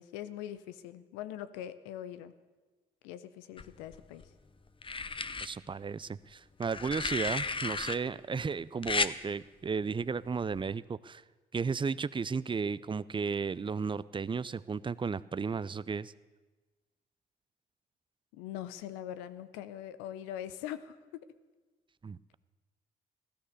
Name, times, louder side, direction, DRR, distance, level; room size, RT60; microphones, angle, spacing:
voice 1, 0.0-2.3 3.0-4.2 18.3-21.2, left 11 dB, 90° left, 13 dB, 0.7 m, -42 dB
sound 1, 3.6-4.3 4.8-5.5 6.6-8.0 8.8-9.1 10.5-10.7, left 4 dB, 30° left, 0.8 m, -33 dB
voice 2, 5.4-11.2 11.5-16.1 22.0-22.3, right 5 dB, 25° right, 18 dB, 0.6 m, -34 dB
15.5 x 13.0 x 6.7 m, 1.3 s
hypercardioid pair, 50°, 18 cm